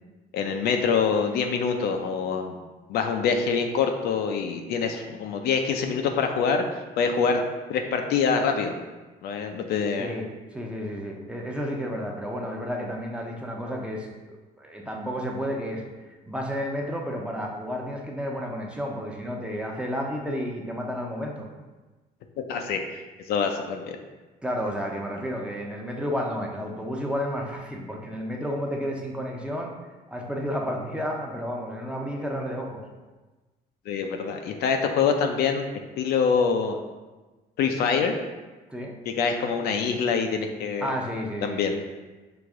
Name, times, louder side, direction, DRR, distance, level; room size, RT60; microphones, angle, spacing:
voice 1, 0.3-2.6 2.9-6.6 7.0-7.4 7.7-8.7 9.2-10.1 22.5-22.8 23.3-24.0 33.9-35.6 36.0-36.8 37.6-38.1 39.1-40.9 41.4-41.8, left 6 dB, 70° left, 4 dB, 0.5 m, -25 dB
voice 2, 10.0-15.8 16.3-21.5 24.4-29.7 30.1-32.8 38.7-39.0 40.8-41.7, equal, 5° right, 0 dB, 0.6 m, -31 dB
4.9 x 2.5 x 3.6 m, 1.2 s
cardioid pair, 110°, 17 cm